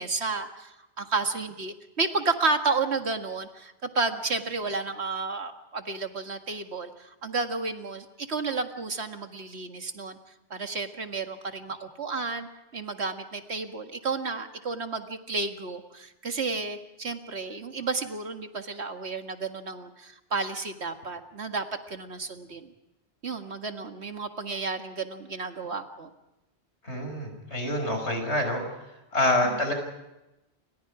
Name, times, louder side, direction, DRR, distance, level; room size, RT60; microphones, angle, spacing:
voice 1, 0.0-10.2 10.5-22.7 23.2-26.1 29.4-29.7, right 3 dB, 75° right, 6 dB, 2.1 m, -32 dB
voice 2, 26.8-28.6 29.1-29.7, left 1 dB, 85° left, 4 dB, 6.1 m, -26 dB
29.0 x 25.0 x 4.9 m, 0.96 s
omnidirectional pair, 1.1 m